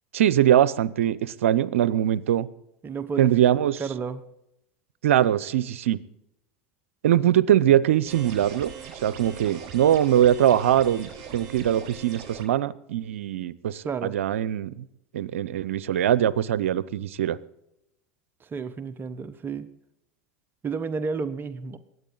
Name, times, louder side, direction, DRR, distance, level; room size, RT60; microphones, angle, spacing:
voice 1, 0.1-2.5 3.2-3.8 5.0-6.0 7.0-8.7 9.0-14.8 15.1-17.4, right 11 dB, 85° right, 20 dB, 0.6 m, -22 dB
voice 2, 2.8-3.3 3.8-4.2 13.8-14.2 18.4-19.7 20.6-21.8, right 5 dB, 30° right, 13 dB, 1.0 m, -31 dB
sound 1, 8.1-12.5, right 7 dB, 60° right, 6.6 m, -41 dB
22.0 x 9.3 x 3.9 m, 0.81 s
hypercardioid pair, 90°, 7 cm